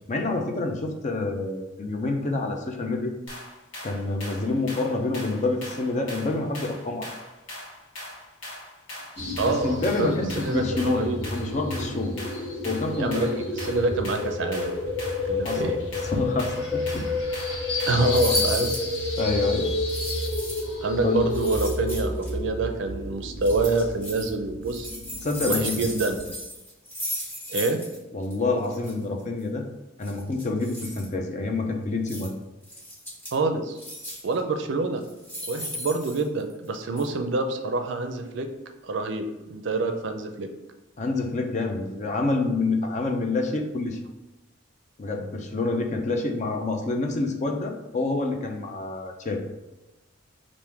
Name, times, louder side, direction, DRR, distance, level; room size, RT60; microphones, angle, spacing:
voice 1, 0.1-3.1 3.8-7.1 9.4-12.2 12.6-13.3 15.4-15.7 16.0-17.1 18.3-18.4 19.2-19.7 21.0-21.2 25.2-25.8 28.1-29.6 30.0-32.3 41.0-44.0 45.0-49.4, left 3 dB, 35° left, 3 dB, 0.5 m, -27 dB
sound 1, 3.3-18.2, left 1 dB, 70° left, 1.3 m, -41 dB
sound 2, 9.2-26.3, left 2 dB, 55° left, 1.0 m, -30 dB
voice 2, 9.4-11.2 13.0-14.7 15.3-15.8 17.9-18.7 20.8-24.9 25.5-26.2 27.5-27.8 33.3-33.8 34.2-35.0 35.5-38.5 38.8-40.5, right 3 dB, 60° right, 6 dB, 0.4 m, -26 dB
sound 3, 18.1-18.9 19.9-20.7 21.3-22.3 23.4-24.3 24.6-28.0 28.2-28.3 28.6-28.9 30.0-31.1 32.1-32.3 32.6-33.4 33.8-34.3 35.0-36.7 37.0-37.1, equal, 10° left, 1.1 m, -35 dB
3.6 x 2.5 x 4.6 m, 1.0 s
head